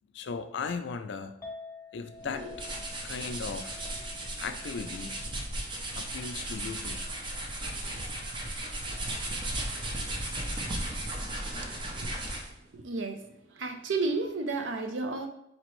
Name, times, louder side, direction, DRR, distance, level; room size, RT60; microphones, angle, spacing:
voice 1, 0.1-1.3 1.9-2.5 3.0-3.8 4.4-5.1 5.9-7.0, left 5 dB, 65° left, 9 dB, 0.4 m, -37 dB
Chink clink, 1.4-7.7, left 3 dB, 10° left, 0.8 m, -50 dB
sound 1, 2.2-12.6, right 1 dB, 25° right, 0.5 m, -36 dB
voice 2, 12.7-13.2 13.6-15.3, right 3 dB, 90° right, 5 dB, 0.5 m, -31 dB
4.3 x 2.9 x 3.0 m, 0.78 s
head